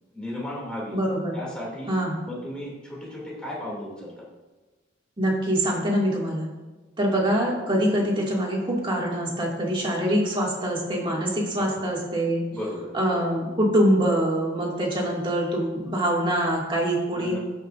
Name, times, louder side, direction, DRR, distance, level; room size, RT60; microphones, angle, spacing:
voice 1, 0.1-1.0 1.3-1.9 2.2-4.2 11.5-11.8 12.5-13.3 15.0-15.1 17.1-17.4, left 1 dB, 5° left, -6 dB, 2.8 m, -35 dB
voice 2, 0.9-1.4 1.9-2.1 5.2-6.5 7.0-12.4 12.9-17.4, right 1 dB, 25° right, -4 dB, 2.3 m, -24 dB
17.0 x 5.8 x 2.6 m, 1.2 s
head